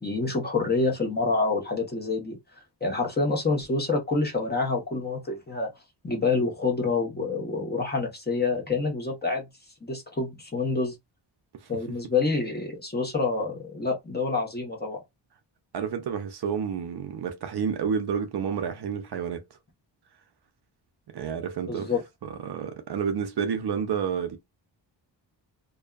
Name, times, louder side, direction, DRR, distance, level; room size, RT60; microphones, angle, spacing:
voice 1, 0.0-2.4 2.8-5.7 6.0-9.5 9.8-11.0 11.7-15.0 21.6-22.0, left 3 dB, 20° left, 1.0 m, -27 dB
voice 2, 15.7-19.4 21.1-21.9 22.4-24.4, right 7 dB, 60° right, 0.6 m, -29 dB
2.5 x 2.3 x 2.3 m
cardioid pair, 70°, 45 cm